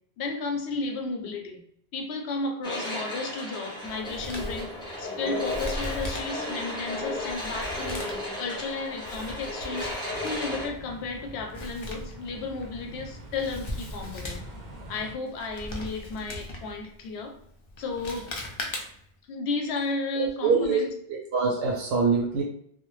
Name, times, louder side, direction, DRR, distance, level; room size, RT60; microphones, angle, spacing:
voice 1, 0.2-1.6 1.9-8.1 8.4-9.9 10.2-14.4 14.9-17.3 17.8-18.3 19.3-20.9, left 3 dB, 90° left, 3 dB, 0.8 m, -33 dB
sound 1, 2.6-10.7, left 1 dB, 5° left, 0.8 m, -34 dB
Male speech man speaking, 3.9-19.2, left 1 dB, 55° left, 0.3 m, -40 dB
sound 2, 10.1-15.2, right 1 dB, 55° right, 0.5 m, -44 dB
voice 2, 20.1-20.8 21.1-22.4, right 5 dB, 85° right, -2 dB, 0.8 m, -24 dB
2.1 x 2.1 x 3.0 m, 0.67 s
omnidirectional pair, 1.1 m